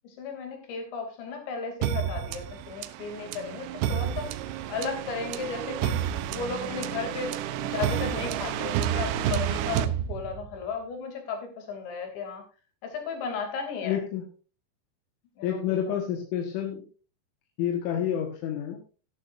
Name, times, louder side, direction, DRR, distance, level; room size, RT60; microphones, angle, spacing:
voice 1, 0.0-4.3 4.7-6.0 6.3-12.5 12.8-14.0 15.4-15.6 15.9-16.0, left 5 dB, 70° left, 4 dB, 5.1 m, -35 dB
sound 1, 1.8-10.7, right 10 dB, 75° right, 2.7 m, -30 dB
voice 2, 13.8-14.2 15.4-16.8 17.6-18.8, left 9 dB, 85° left, 2 dB, 4.1 m, -29 dB
13.5 x 12.5 x 2.6 m, 0.35 s
omnidirectional pair, 5.4 m